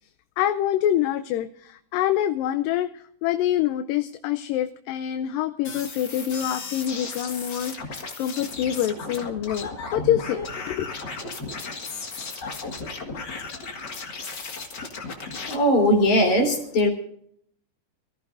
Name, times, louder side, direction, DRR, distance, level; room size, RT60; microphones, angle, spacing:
voice 1, 0.4-10.9, left 11 dB, 80° left, 8 dB, 2.3 m, -26 dB
sound 1, 5.6-15.5, left 4 dB, 40° left, 1.7 m, -35 dB
voice 2, 15.5-16.9, equal, 55° left, 3 dB, 4.6 m, -19 dB
25.5 x 14.5 x 2.6 m, 0.67 s
omnidirectional pair, 4.0 m